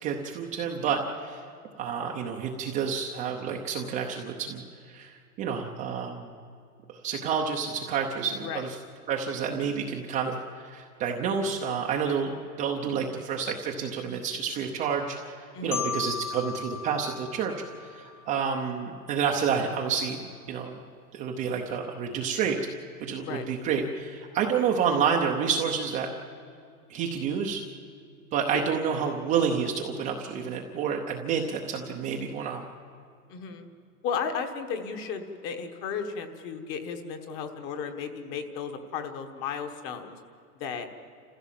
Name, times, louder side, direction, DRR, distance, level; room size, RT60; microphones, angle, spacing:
voice 1, 0.0-1.4 1.8-4.6 4.9-6.3 7.0-8.7 9.1-12.3 12.6-15.3 15.6-17.5 17.8-20.2 20.5-20.8 21.1-22.6 23.0-26.1 26.9-27.6 28.3-32.6, right 6 dB, 15° right, 1 dB, 0.7 m, -29 dB
voice 2, 15.5-15.8 23.2-23.4 28.5-28.7 33.3-33.7 34.0-40.2 40.6-40.9, left 6 dB, 25° left, 7 dB, 1.3 m, -34 dB
Marimba xylophone, 15.7-18.6, left 7 dB, 60° left, 0.9 m, -36 dB
28.0 x 15.5 x 7.5 m, 2.5 s
supercardioid pair, 165°, 46 cm